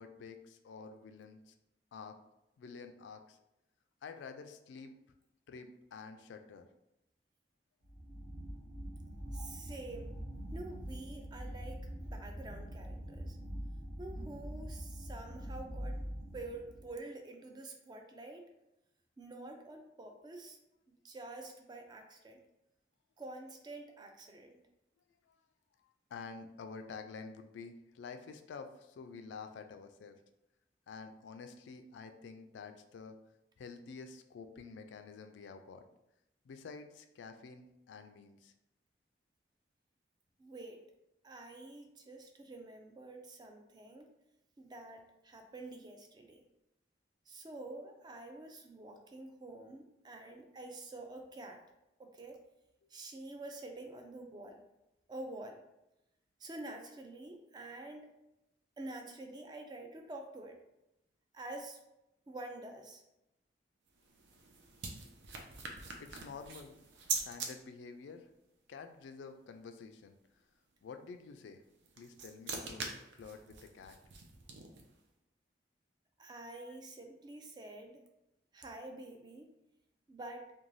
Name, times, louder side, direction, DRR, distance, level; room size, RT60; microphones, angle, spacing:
voice 1, 0.0-1.5 1.9-2.2 2.6-3.4 4.0-4.9 5.5-6.7 25.2-25.4 25.8-30.2 30.9-33.1 33.6-35.9 36.4-38.5 66.0-66.7 67.2-68.3 68.7-70.2 70.8-71.6 72.0-74.0 76.7-76.8, left 5 dB, 90° left, 8 dB, 0.3 m, -49 dB
sound 1, 7.8-16.9, equal, 60° right, 0.9 m, -44 dB
voice 2, 9.3-10.2 10.5-13.4 14.0-16.0 16.3-18.4 19.2-20.6 20.9-22.4 23.2-24.6 40.4-40.8 41.2-44.1 44.6-46.4 47.3-51.6 52.0-52.4 52.9-54.6 55.1-55.6 56.4-58.1 58.8-60.6 61.3-61.8 62.3-63.0 76.2-78.0 78.5-79.5 80.1-80.5, right 2 dB, 25° right, 4 dB, 0.3 m, -48 dB
sound 2, 63.9-67.5 71.6-75.0, right 4 dB, 85° right, 0.5 m, -43 dB
2.6 x 2.2 x 3.1 m, 0.89 s
head